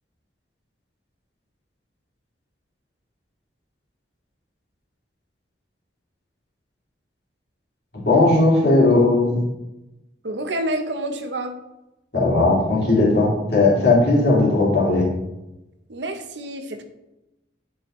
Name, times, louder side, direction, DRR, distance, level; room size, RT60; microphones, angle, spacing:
voice 1, 8.0-9.4 12.1-15.1, left 2 dB, 60° left, -5 dB, 2.6 m, -17 dB
voice 2, 10.2-11.6 15.9-16.8, right 1 dB, 70° right, 7 dB, 0.8 m, -28 dB
9.1 x 4.7 x 3.1 m, 0.94 s
head